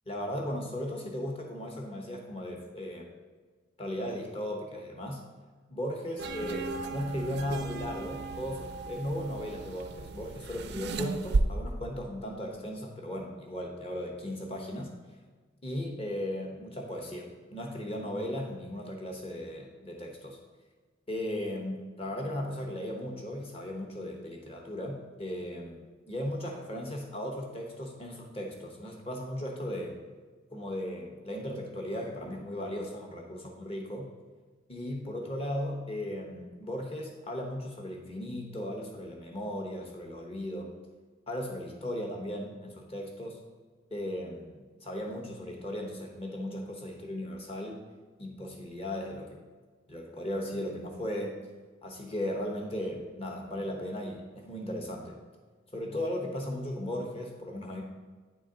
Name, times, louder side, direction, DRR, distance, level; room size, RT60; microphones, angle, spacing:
voice 1, 0.1-3.1 3.8-5.2 5.7-14.9 15.6-20.4 21.1-30.0 30.5-34.1 34.7-40.7 41.3-43.4 43.9-47.8 48.2-49.4 49.9-51.4 51.8-55.2 55.7-57.8, left 1 dB, 30° left, 1 dB, 1.0 m, -36 dB
sound 1, 6.2-11.4, right 4 dB, 50° right, 0.4 m, -35 dB
9.5 x 4.2 x 3.8 m, 1.4 s
head